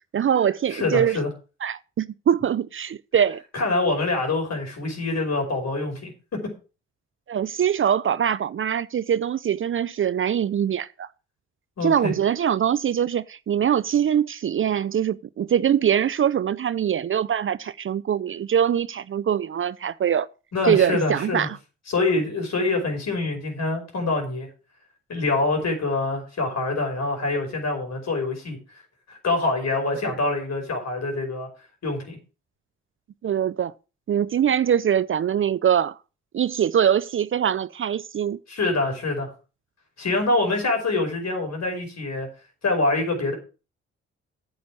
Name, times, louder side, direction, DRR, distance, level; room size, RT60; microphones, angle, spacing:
voice 1, 0.1-1.2 1.6-3.4 7.3-11.1 11.8-20.3 20.6-21.6 30.0-30.1 33.2-33.7 34.1-36.0 36.3-38.4, right 9 dB, 40° right, 0.5 m, -23 dB
voice 2, 0.7-1.3 3.5-6.4 11.8-12.1 20.5-21.5 21.9-24.5 25.1-28.6 29.1-31.5 31.8-32.2 38.5-39.3 40.0-42.3 42.6-43.3, left 2 dB, 55° left, 5.3 m, -25 dB
9.4 x 7.1 x 6.1 m
hypercardioid pair, 45°, 32 cm